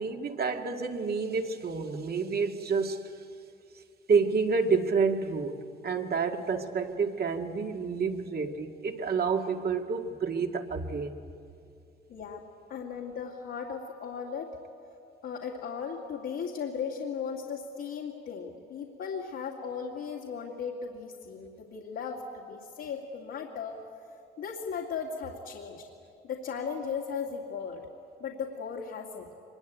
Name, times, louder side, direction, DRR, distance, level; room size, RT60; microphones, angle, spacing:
voice 1, 0.0-3.0 4.1-5.5 5.8-11.2, right 5 dB, 50° right, 4 dB, 2.0 m, -29 dB
voice 2, 12.1-14.5 15.2-23.8 24.4-25.9 26.2-27.9 28.2-29.3, left 6 dB, 75° left, -2 dB, 2.4 m, -37 dB
24.5 x 22.5 x 9.2 m, 2.5 s
cardioid pair, 90°, 20 cm